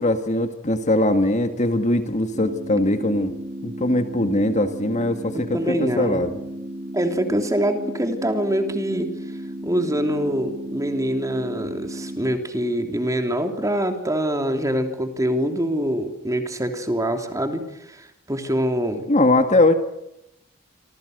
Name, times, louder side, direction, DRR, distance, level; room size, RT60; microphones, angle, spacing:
voice 1, 0.0-3.3 3.6-6.3 19.1-19.7, left 1 dB, 35° left, 8 dB, 1.8 m, -21 dB
sound 1, 2.3-12.3, right 1 dB, 30° right, 2.1 m, -34 dB
voice 2, 5.3-6.2 6.9-9.1 9.6-19.0, equal, 15° right, 6 dB, 3.1 m, -24 dB
27.5 x 26.0 x 6.7 m, 0.85 s
head